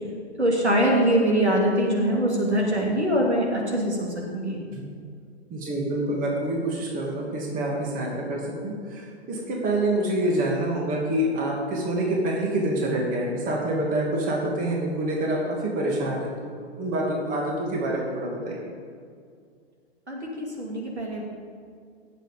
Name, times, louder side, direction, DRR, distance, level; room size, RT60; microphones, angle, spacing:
voice 1, 0.4-4.6 20.1-21.2, right 1 dB, 85° right, -1 dB, 3.0 m, -23 dB
voice 2, 5.5-16.5 16.8-18.6, right 1 dB, 25° right, -1 dB, 2.6 m, -27 dB
18.0 x 7.5 x 5.3 m, 2.2 s
figure-of-eight pair, 110°, 33 cm